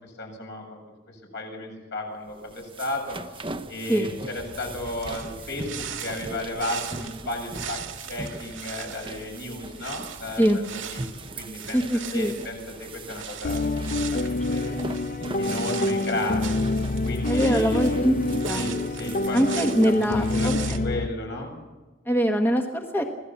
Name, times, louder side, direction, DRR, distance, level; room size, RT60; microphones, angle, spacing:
voice 1, 0.2-0.8 1.3-7.8 8.1-11.8 12.1-14.8 15.4-16.6 17.0-18.1 18.5-19.4 19.8-21.5, left 1 dB, 65° left, 2 dB, 7.5 m, -34 dB
sound 1, 2.3-20.7, right 2 dB, 30° right, 1.0 m, -41 dB
sound 2, 4.4-20.8, right 8 dB, 85° right, 1.9 m, -40 dB
voice 2, 11.7-12.3 17.2-18.7 19.3-20.8 22.1-23.0, equal, 10° left, 3 dB, 1.3 m, -23 dB
sound 3, 13.4-21.1, left 2 dB, 45° left, 0.6 m, -27 dB
26.0 x 17.0 x 7.2 m, 1.2 s
head